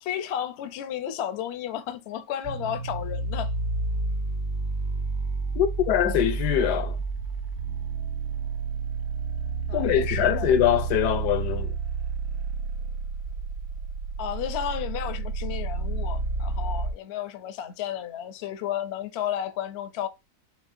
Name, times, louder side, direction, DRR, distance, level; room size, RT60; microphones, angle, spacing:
voice 1, 0.0-3.5 9.7-10.5 14.2-20.1, left 10 dB, 65° left, 0.6 m, -33 dB
sound 1, 2.4-16.9, right 4 dB, 70° right, 0.6 m, -30 dB
voice 2, 5.5-7.0 9.7-11.8, left 10 dB, 90° left, 1.2 m, -23 dB
4.4 x 3.5 x 2.5 m
omnidirectional pair, 1.7 m